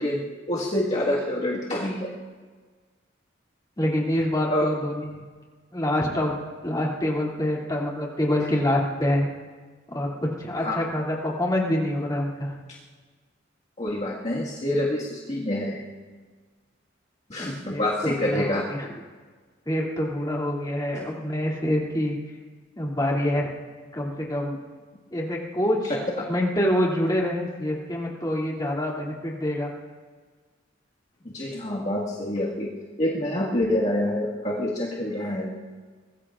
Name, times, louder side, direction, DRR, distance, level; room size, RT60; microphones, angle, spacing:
voice 1, 0.0-2.1 4.5-4.7 10.6-10.8 12.7-12.8 13.8-15.8 17.3-18.7 26.2-26.3 31.2-32.7 33.0-35.7, left 1 dB, 35° left, -5 dB, 1.7 m, -27 dB
voice 2, 3.8-5.2 5.7-6.4 6.6-9.3 9.9-10.1 10.4-12.5 17.7-18.9 19.7-22.2 22.8-23.5 23.9-24.6 25.1-25.9 26.3-29.7, left 1 dB, 20° left, -3 dB, 2.6 m, -26 dB
24.5 x 20.5 x 2.5 m, 1.5 s
head